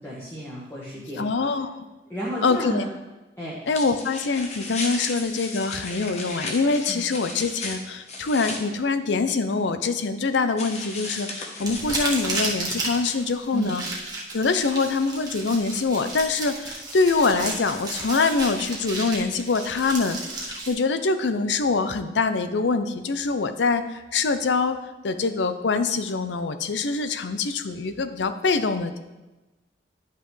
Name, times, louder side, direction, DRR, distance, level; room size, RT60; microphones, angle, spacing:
voice 1, 0.0-1.5 2.1-2.9 3.4-3.7 6.9-7.0 13.5-13.8, right 1 dB, 10° left, -6 dB, 1.3 m, -32 dB
voice 2, 1.2-1.8 2.4-2.8 3.7-13.8 14.3-24.8 25.0-29.0, left 4 dB, 75° left, 10 dB, 0.5 m, -24 dB
sound 1, 3.7-8.6 10.6-12.5, left 2 dB, 35° left, 1.1 m, -35 dB
sound 2, 11.6-20.7, right 2 dB, 20° right, 1.3 m, -33 dB
11.0 x 5.7 x 3.2 m, 1.1 s
head